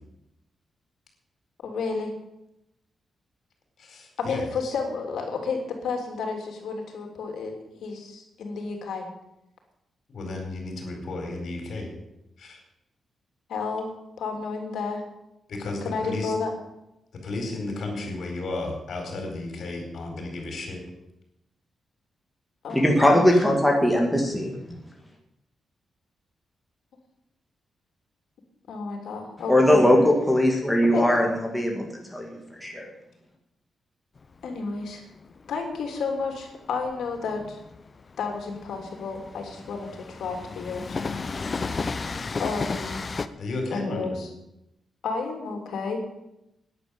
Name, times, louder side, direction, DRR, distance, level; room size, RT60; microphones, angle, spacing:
voice 1, 1.6-2.1 4.2-9.1 13.5-13.9 14.2-15.0 15.7-16.5 22.6-23.3 28.7-29.9 30.9-31.1 34.4-35.0 35.5-37.6 38.2-41.0 41.3-41.4 42.4-43.0 43.7-44.3 45.0-46.0, left 4 dB, 80° left, 2 dB, 3.2 m, -31 dB
voice 2, 3.8-4.7 10.1-11.9 12.4-12.6 15.5-16.3 17.2-20.8 43.4-44.2, left 2 dB, 55° left, 3 dB, 4.6 m, -33 dB
voice 3, 22.7-24.5 29.5-32.9, left 1 dB, ahead, 0 dB, 2.0 m, -20 dB
Train, 34.2-43.3, left 4 dB, 30° left, 0.7 m, -34 dB
12.0 x 10.0 x 9.0 m, 0.88 s
wide cardioid pair, 175°, 0 cm